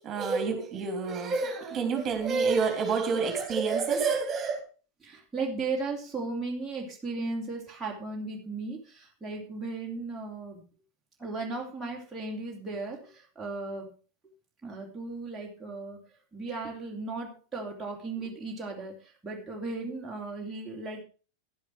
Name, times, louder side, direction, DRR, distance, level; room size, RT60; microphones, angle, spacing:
voice 1, 0.0-4.6, right 5 dB, 25° right, 5 dB, 3.3 m, -28 dB
voice 2, 5.0-10.6 11.2-13.9 14.6-16.0 16.3-21.0, right 3 dB, 10° right, -3 dB, 3.0 m, -36 dB
11.5 x 10.5 x 4.6 m, 0.36 s
figure-of-eight pair, 90°, 0 cm